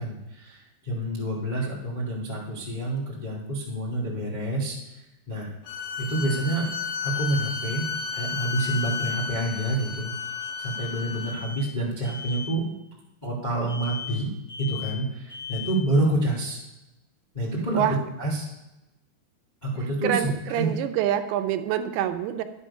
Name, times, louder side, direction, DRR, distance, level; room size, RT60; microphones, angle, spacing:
voice 1, 0.0-4.7 5.3-5.5 6.0-6.7 7.0-10.1 10.6-12.7 13.2-14.3 14.6-16.6 17.3-18.4 19.6-20.7, right 1 dB, 50° left, -4 dB, 0.5 m, -28 dB
sound 1, 3.9-4.0 7.1-8.5 8.8-9.3 10.4-10.9 11.2-11.7 12.0-12.5 13.7-14.2 14.5-15.0 15.3-15.9, left 5 dB, 30° left, 3.6 m, -39 dB
sound 2, 5.7-11.4, left 6 dB, 90° left, 3.7 m, -32 dB
voice 2, 20.0-22.4, right 11 dB, 80° right, 8 dB, 2.9 m, -26 dB
11.5 x 8.5 x 5.5 m, 0.96 s
omnidirectional pair, 5.2 m